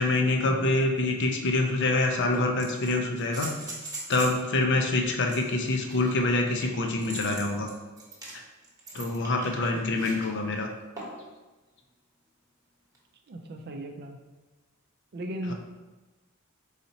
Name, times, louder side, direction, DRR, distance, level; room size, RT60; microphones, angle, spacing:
voice 1, 0.0-3.6 4.1-7.7 8.9-10.7 15.5-15.6, left 2 dB, 55° left, 4 dB, 0.5 m, -26 dB
sound 1, 1.3-1.4 2.3-4.4 5.3-10.3 11.0-11.3 12.9-13.0, right 2 dB, 15° right, 1.0 m, -41 dB
voice 2, 9.4-9.8 13.3-14.2 15.1-15.5, right 1 dB, 50° right, 5 dB, 0.4 m, -37 dB
4.1 x 4.0 x 2.8 m, 1.2 s
head